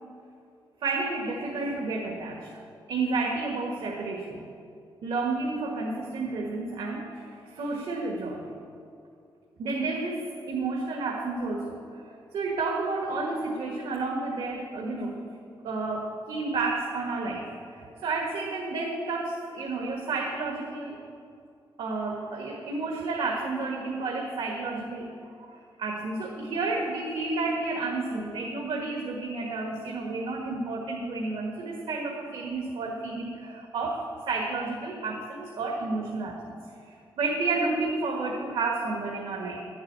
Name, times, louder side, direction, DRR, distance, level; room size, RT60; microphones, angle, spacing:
voice 1, 0.8-2.6 2.9-4.5 5.0-8.4 9.6-15.2 15.6-21.0 21.8-25.1 25.5-36.5 36.8-39.6, right 3 dB, 85° right, -1 dB, 1.6 m, -31 dB
11.5 x 7.9 x 9.5 m, 2.5 s
wide cardioid pair, 150°, 9 cm